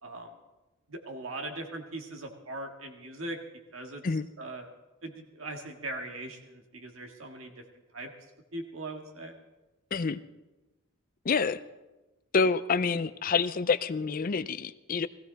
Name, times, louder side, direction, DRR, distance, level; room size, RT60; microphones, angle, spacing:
voice 1, 0.9-3.4 3.7-4.0 4.4-4.7 5.0-7.5 7.9-8.1 8.5-9.3, right 2 dB, 65° right, 2 dB, 1.9 m, -40 dB
voice 2, 11.2-11.6 12.3-15.1, left 5 dB, 40° left, 14 dB, 0.5 m, -27 dB
17.5 x 15.5 x 4.0 m, 1.1 s
head